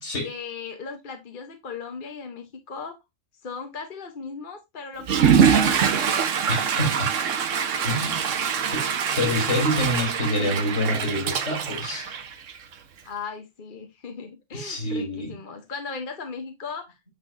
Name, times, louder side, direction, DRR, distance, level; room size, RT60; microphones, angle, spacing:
voice 1, 0.2-3.0 3.4-6.1 13.0-17.0, left 5 dB, 45° left, 1.1 m, -37 dB
Water / Toilet flush, 5.0-12.7, right 7 dB, 90° right, 1.3 m, -23 dB
voice 2, 6.5-7.1 7.8-8.4 8.7-8.8 9.2-12.2 14.5-15.3, left 1 dB, 75° left, 4.3 m, -27 dB
8.4 x 6.1 x 2.6 m
omnidirectional pair, 1.3 m